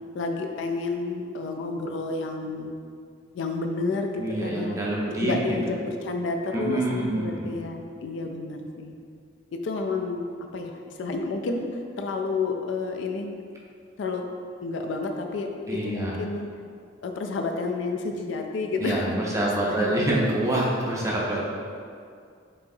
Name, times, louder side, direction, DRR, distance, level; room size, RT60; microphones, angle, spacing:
voice 1, 0.1-2.7 3.3-4.8 5.2-8.9 9.5-10.3 10.5-11.7 12.0-13.3 14.0-14.3 14.6-16.5 17.0-20.1, left 3 dB, 65° left, 3 dB, 0.3 m, -30 dB
voice 2, 4.2-5.3 6.5-7.6 15.7-16.2 18.8-21.4, right 1 dB, 15° right, -4 dB, 0.5 m, -26 dB
4.7 x 2.8 x 2.6 m, 2.3 s
head